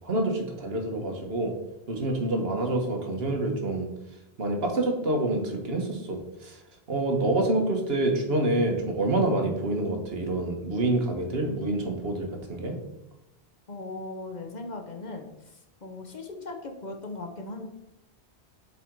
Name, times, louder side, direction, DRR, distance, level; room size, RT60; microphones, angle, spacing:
voice 1, 0.0-1.5 1.9-3.9 4.4-6.6 6.9-12.8, right 2 dB, 70° right, 3 dB, 1.5 m, -27 dB
voice 2, 13.7-17.6, left 2 dB, 45° left, 4 dB, 0.9 m, -38 dB
7.6 x 4.2 x 4.6 m, 0.90 s
omnidirectional pair, 1.1 m